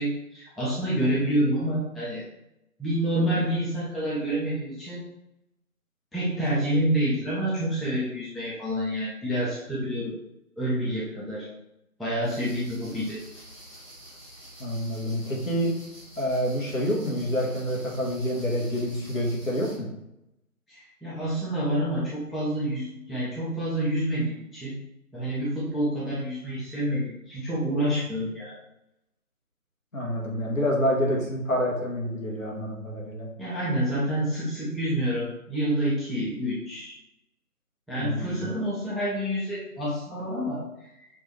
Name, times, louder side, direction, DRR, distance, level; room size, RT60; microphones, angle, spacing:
voice 1, 0.0-2.2 2.8-5.0 6.1-10.1 10.6-11.5 12.0-13.2 20.7-24.7 25.1-28.5 33.4-36.9 37.9-40.6, right 1 dB, ahead, -8 dB, 0.5 m, -28 dB
sound 1, 12.2-19.8, right 1 dB, 20° left, 1.1 m, -48 dB
voice 2, 14.6-15.7 16.2-19.9 29.9-33.3 38.0-38.4, equal, 60° left, -2 dB, 1.4 m, -27 dB
6.1 x 2.6 x 3.1 m, 0.86 s
figure-of-eight pair, 165°, 46 cm